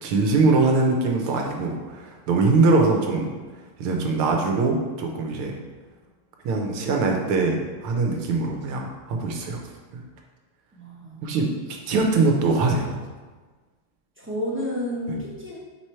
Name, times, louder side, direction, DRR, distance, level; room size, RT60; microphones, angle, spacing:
voice 1, 0.0-3.3 3.8-5.5 6.5-9.6 9.9-10.0 11.2-11.5 11.9-13.0 15.1-15.2, right 3 dB, 90° right, 2 dB, 1.7 m, -22 dB
voice 2, 10.7-11.2 14.2-15.6, left 1 dB, 15° right, -6 dB, 0.5 m, -31 dB
4.8 x 4.8 x 4.4 m, 1.4 s
omnidirectional pair, 2.3 m